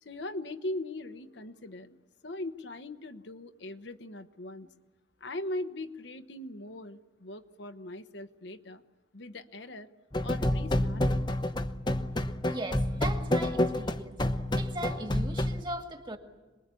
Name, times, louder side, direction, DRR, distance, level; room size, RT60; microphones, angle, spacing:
voice 1, 0.0-4.7 5.2-8.8 9.1-9.9 10.2-11.3, left 1 dB, 70° left, 1.1 m, -40 dB
sound 1, 10.1-15.6, left 1 dB, 25° left, 0.8 m, -29 dB
voice 2, 12.5-14.2 14.5-16.2, right 1 dB, 25° right, 2.1 m, -38 dB
27.0 x 21.0 x 8.4 m
head